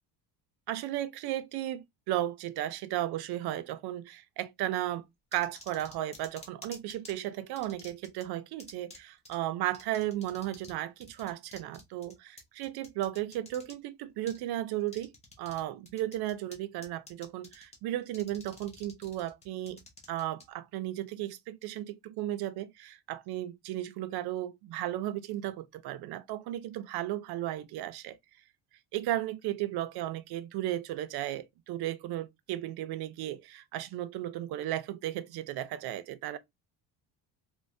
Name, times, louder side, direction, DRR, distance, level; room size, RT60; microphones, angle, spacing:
voice 1, 0.7-5.0 5.3-19.8 20.1-28.2 28.9-36.4, right 13 dB, 65° right, 0.5 m, -35 dB
sound 1, 5.3-7.1 7.6-8.2 8.6-9.0 9.3-9.4 9.7-10.8 11.0-13.7 14.3-14.4 14.9-15.6 15.9-16.6 16.8-17.8 18.1-20.4, left 2 dB, 15° left, 0.7 m, -50 dB
3.1 x 2.2 x 2.5 m
cardioid pair, 150°, 41 cm